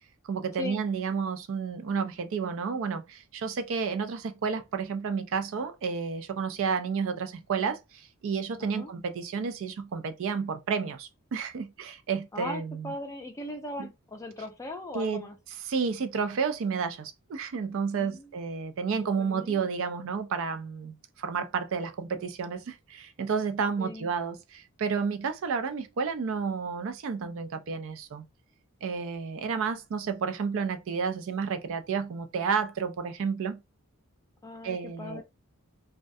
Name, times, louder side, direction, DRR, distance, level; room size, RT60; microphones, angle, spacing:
voice 1, 0.2-12.9 13.8-13.9 14.9-15.3 15.6-28.2 28.8-33.6 34.6-35.2, right 5 dB, 60° right, 0.3 m, -31 dB
voice 2, 8.6-8.9 12.3-15.4 17.9-18.3 19.0-19.7 23.8-24.1 34.4-35.2, left 1 dB, 15° left, 0.4 m, -39 dB
2.3 x 2.1 x 2.5 m
head